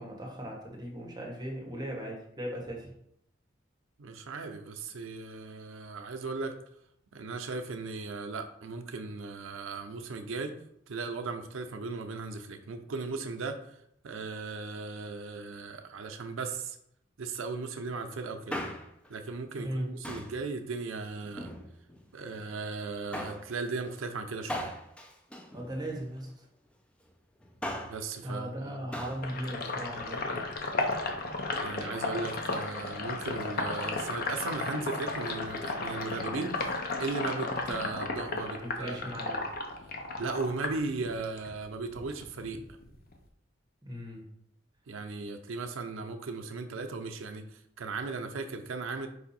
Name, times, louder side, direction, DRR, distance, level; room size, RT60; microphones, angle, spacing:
voice 1, 0.0-2.9 19.6-19.9 25.5-26.5 28.2-30.4 38.5-39.5 43.8-44.2, equal, 20° right, -1 dB, 1.0 m, -38 dB
voice 2, 4.0-6.5 7.1-10.5 10.9-13.6 14.0-16.8 17.2-18.6 19.1-21.5 22.1-24.7 27.8-28.7 31.6-39.0 40.2-42.6 44.9-47.4 47.8-49.1, right 3 dB, 90° right, 6 dB, 0.5 m, -37 dB
Male speech man speaking, 18.3-19.1 20.0-20.4 21.2-22.0 23.1-23.5 24.5-26.2 27.4-28.1 28.9-29.3 29.5-29.6, equal, 5° left, 0.4 m, -39 dB
Sink (filling or washing), 29.2-41.5 41.8-43.3, left 3 dB, 50° left, 0.6 m, -34 dB
4.8 x 2.6 x 4.1 m, 0.73 s
head